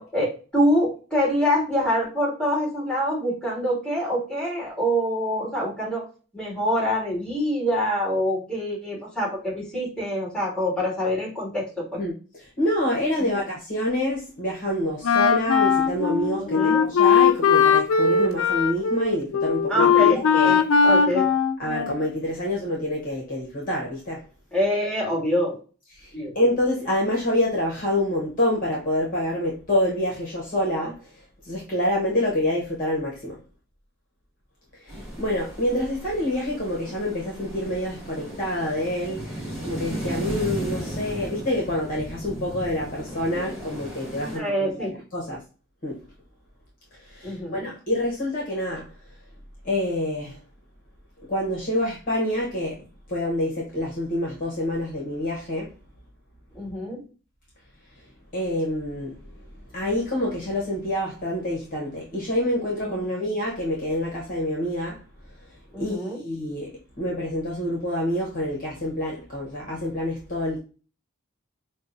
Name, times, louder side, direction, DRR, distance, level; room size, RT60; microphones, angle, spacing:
voice 1, 0.0-6.0 6.3-12.0 13.2-13.3 16.4-16.8 19.7-20.6 20.8-21.3 24.5-25.6 26.1-26.3 44.2-44.9 47.2-47.7 56.5-57.0 62.9-63.2 65.7-66.2, equal, 5° left, 2.0 m, -25 dB
voice 2, 12.0-20.6 21.6-24.2 25.9-33.4 34.7-45.4 45.8-46.0 47.0-48.9 49.6-50.4 51.2-55.7 58.3-59.3 59.7-65.0 65.3-70.6, left 1 dB, 40° left, 0.9 m, -27 dB
Wind instrument woodwind instrument, 15.0-22.3, left 6 dB, 65° left, 0.4 m, -19 dB
sound 1, 34.9-44.4, equal, 10° right, 1.9 m, -35 dB
5.4 x 2.1 x 2.5 m
head